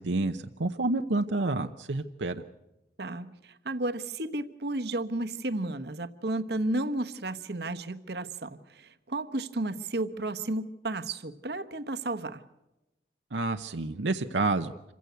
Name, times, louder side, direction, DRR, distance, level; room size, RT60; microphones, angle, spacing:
voice 1, 0.0-2.4 13.3-14.7, right 2 dB, 85° right, 0.9 m, -29 dB
voice 2, 3.0-12.4, right 2 dB, 65° right, 1.2 m, -33 dB
27.0 x 16.0 x 8.1 m
head